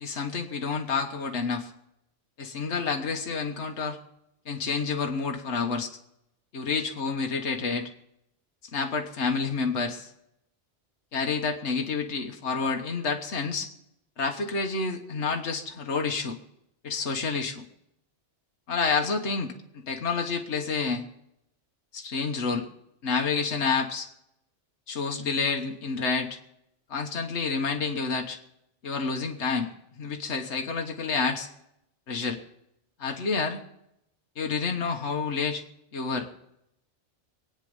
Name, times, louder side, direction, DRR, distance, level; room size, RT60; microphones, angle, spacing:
voice 1, 0.0-1.7 2.4-4.0 4.5-5.9 6.5-7.9 8.7-10.1 11.1-13.7 14.2-16.4 16.8-17.6 18.7-19.5 19.9-21.0 21.9-22.7 23.0-24.1 24.9-26.4 26.9-28.4 28.8-29.7 30.0-31.5 32.1-32.4 33.0-33.6 34.4-35.6 35.9-36.3, left 4 dB, 70° left, 3 dB, 1.6 m, -29 dB
22.5 x 9.1 x 5.4 m, 0.80 s
omnidirectional pair, 1.2 m